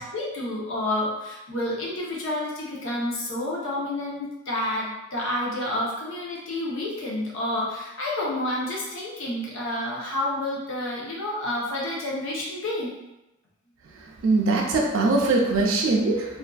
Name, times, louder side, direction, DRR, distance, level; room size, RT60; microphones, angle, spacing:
voice 1, 0.0-12.9, left 1 dB, 85° left, -5 dB, 0.7 m, -29 dB
voice 2, 13.8-16.4, right 3 dB, 85° right, 0 dB, 0.4 m, -22 dB
2.5 x 2.4 x 2.3 m, 0.95 s
head